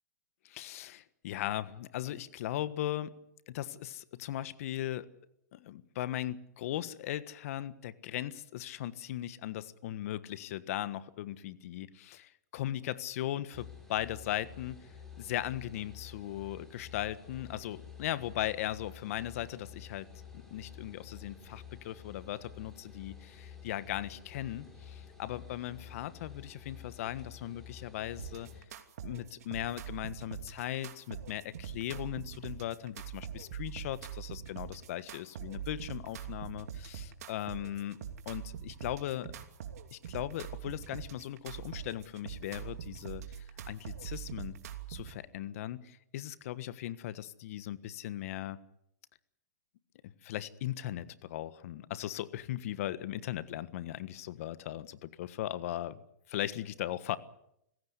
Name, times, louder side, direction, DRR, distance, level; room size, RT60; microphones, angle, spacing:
voice 1, 0.4-3.1 3.5-5.1 5.5-14.9 15.2-20.1 20.3-28.5 29.0-39.3 39.9-43.2 43.7-44.6 44.9-48.6 50.0-56.0 56.3-57.2, left 13 dB, 55° left, 14 dB, 1.4 m, -38 dB
sound 1, 13.5-28.6, left 7 dB, 5° left, 6.1 m, -50 dB
sound 2, 28.2-45.2, right 9 dB, 65° right, 2.8 m, -43 dB
25.0 x 16.5 x 8.2 m, 0.78 s
hypercardioid pair, 130°, 9 cm